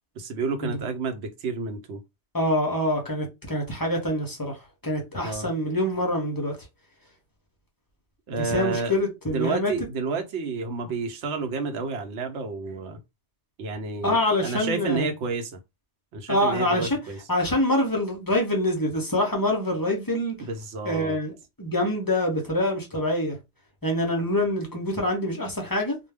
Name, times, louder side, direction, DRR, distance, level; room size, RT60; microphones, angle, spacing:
voice 1, 0.2-2.0 5.2-5.5 8.3-9.0 9.3-13.0 13.6-15.5 16.1-17.2 20.4-21.2, right 4 dB, 75° right, 0.9 m, -30 dB
voice 2, 2.3-4.6 4.8-6.6 8.4-9.7 14.0-15.1 16.3-17.0 17.3-20.3 20.8-21.3 21.6-23.4 23.8-26.0, left 1 dB, 30° left, 0.4 m, -25 dB
2.2 x 2.1 x 3.3 m
omnidirectional pair, 1.2 m